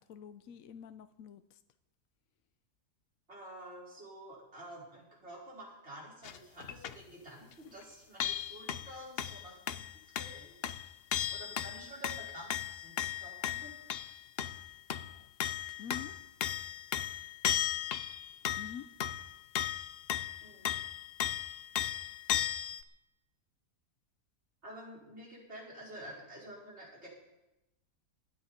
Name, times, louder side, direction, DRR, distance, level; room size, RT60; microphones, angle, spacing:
voice 1, 0.0-1.6 15.8-16.2 18.6-18.9, left 8 dB, 70° left, 10 dB, 1.1 m, -46 dB
voice 2, 3.3-9.8 10.2-10.8 11.3-13.7 20.4-20.8 24.6-27.1, right 1 dB, 45° right, -5 dB, 5.5 m, -49 dB
sound 1, 6.2-7.0 7.5-7.6 7.8-7.9 8.2-22.8, left 10 dB, 55° left, 0.7 m, -36 dB
25.5 x 9.7 x 4.4 m, 0.95 s
omnidirectional pair, 1.5 m